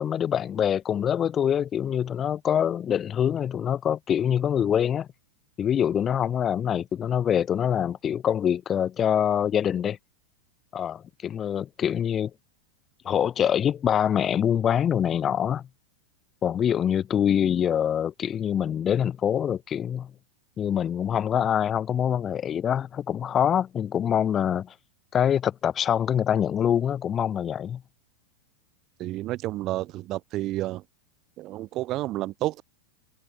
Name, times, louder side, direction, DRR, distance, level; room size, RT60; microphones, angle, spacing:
voice 1, 0.0-5.1 5.6-10.0 10.7-12.3 13.0-15.6 16.4-20.1 20.6-24.7 25.1-27.8, left 9 dB, 25° left, 0.4 m, -25 dB
voice 2, 29.0-30.8 31.4-32.6, right 16 dB, 35° right, 1.3 m, -30 dB
figure-of-eight pair, 90°, 0 cm